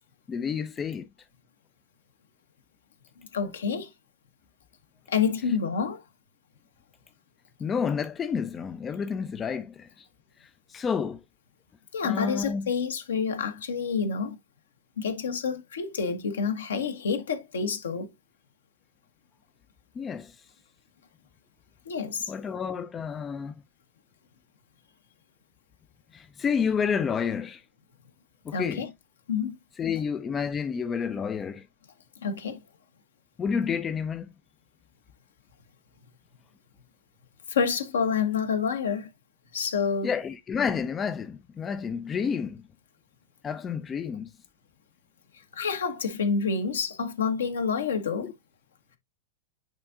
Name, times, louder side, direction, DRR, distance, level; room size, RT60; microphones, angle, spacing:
voice 1, 0.3-1.1 7.6-10.1 10.4-11.2 12.0-12.7 20.0-20.4 22.3-23.5 26.1-27.6 28.4-28.9 29.8-31.7 33.4-34.3 40.0-42.6 43.4-44.3 48.2-48.3, left 6 dB, 20° left, 0.5 m, -30 dB
voice 2, 3.3-3.9 5.1-6.0 11.9-14.4 15.0-18.1 21.8-22.3 28.5-28.9 29.3-29.6 32.2-32.6 37.5-39.1 39.5-40.1 45.5-48.3, left 6 dB, 65° left, 1.2 m, -28 dB
8.9 x 4.3 x 2.5 m
figure-of-eight pair, 90°, 0 cm